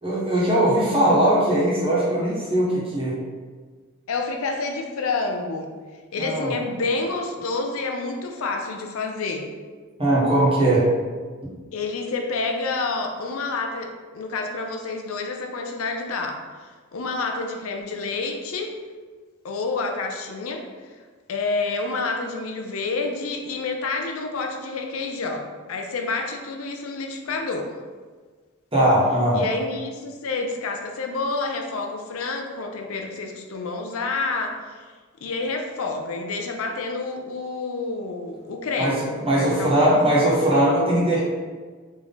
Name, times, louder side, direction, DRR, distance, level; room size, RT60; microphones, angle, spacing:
voice 1, 0.0-3.2 6.2-6.5 10.0-10.9 28.7-29.4 38.8-41.2, right 1 dB, 25° right, -7 dB, 1.4 m, -20 dB
voice 2, 4.1-5.7 6.1-9.5 11.7-18.8 19.4-20.6 21.3-27.7 29.3-34.8 35.2-40.2, left 3 dB, 80° left, 3 dB, 0.5 m, -29 dB
3.6 x 3.2 x 3.9 m, 1.5 s
head